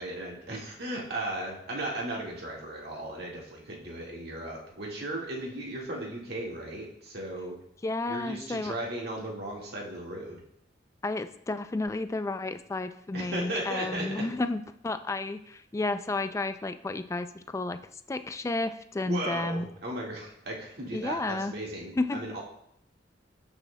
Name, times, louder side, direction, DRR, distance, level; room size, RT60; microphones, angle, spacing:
voice 1, 0.0-7.6 8.1-10.4 13.1-14.2 19.1-22.4, right 1 dB, 60° right, -2 dB, 1.8 m, -36 dB
voice 2, 7.8-8.7 11.0-17.8 18.1-19.7 20.9-21.5 22.0-22.2, left 2 dB, 15° left, 10 dB, 0.3 m, -32 dB
13.5 x 6.2 x 2.2 m, 0.74 s
head